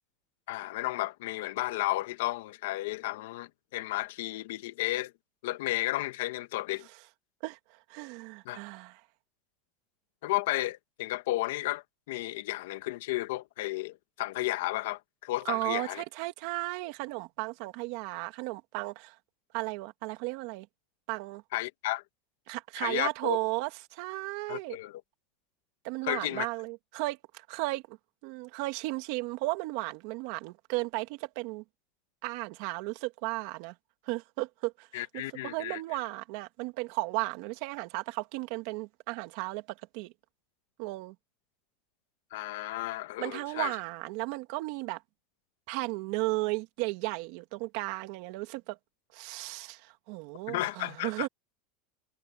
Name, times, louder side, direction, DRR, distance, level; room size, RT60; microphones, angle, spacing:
voice 1, 0.5-5.1 5.4-6.9 8.4-8.6 10.2-16.0 21.5-22.0 22.8-23.4 24.5-25.0 26.0-26.5 34.9-35.8 42.3-43.7 50.5-51.3, left 17 dB, 80° left, 1.4 m, -33 dB
voice 2, 7.4-9.0 15.5-19.1 19.5-20.7 21.1-21.4 22.5-24.8 25.8-28.0 28.2-31.6 32.2-33.7 34.0-40.1 40.8-41.1 43.2-45.0 45.7-48.8 49.1-51.3, right 22 dB, 60° right, 2.5 m, -35 dB
supercardioid pair, 160°, 0 cm